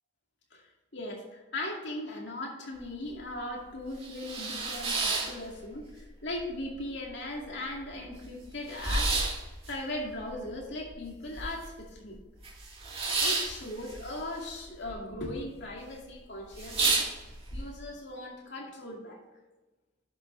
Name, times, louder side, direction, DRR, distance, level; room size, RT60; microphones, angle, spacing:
voice 1, 0.9-9.2 9.6-12.2 13.2-19.2, left 1 dB, 60° left, -1 dB, 2.4 m, -38 dB
sound 1, 2.8-2.9 3.3-3.4 3.8-6.0 6.3-7.1 7.4-7.5 7.7-11.8 12.1-14.9 15.2-15.7 16.1-16.2 16.5-17.6, right 3 dB, 30° right, 2.2 m, -31 dB
11.0 x 6.6 x 3.3 m, 1.2 s
head